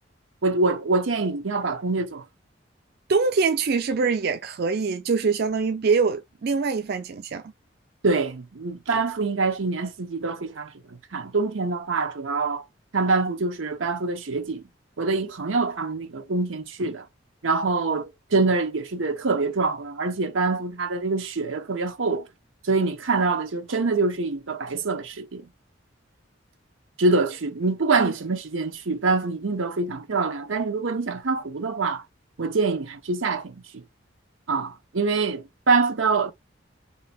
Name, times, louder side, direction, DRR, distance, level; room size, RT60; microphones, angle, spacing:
voice 1, 0.4-2.2 8.0-12.7 12.9-14.6 15.0-17.1 17.4-22.3 22.6-25.5 27.0-32.0 32.4-33.8 34.5-36.3, right 3 dB, 90° right, 0.8 m, -25 dB
voice 2, 3.1-7.4 28.0-28.1, right 4 dB, 55° right, 0.4 m, -24 dB
3.4 x 2.8 x 4.2 m
head